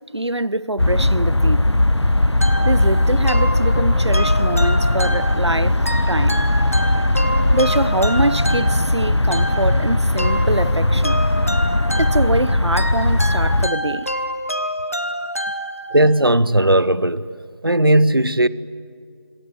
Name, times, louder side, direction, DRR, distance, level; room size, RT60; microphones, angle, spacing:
voice 1, 0.1-1.8 2.6-5.8 6.1-6.5 7.5-11.2 12.0-14.1, right 1 dB, 85° right, 0.9 m, -24 dB
sound 1, 0.8-13.7, left 1 dB, 85° left, 0.9 m, -18 dB
sound 2, 2.4-16.2, equal, 30° left, 0.9 m, -28 dB
voice 2, 15.9-17.3 17.6-18.5, right 1 dB, 55° right, 1.0 m, -16 dB
27.0 x 22.5 x 9.6 m
figure-of-eight pair, 175°, 14 cm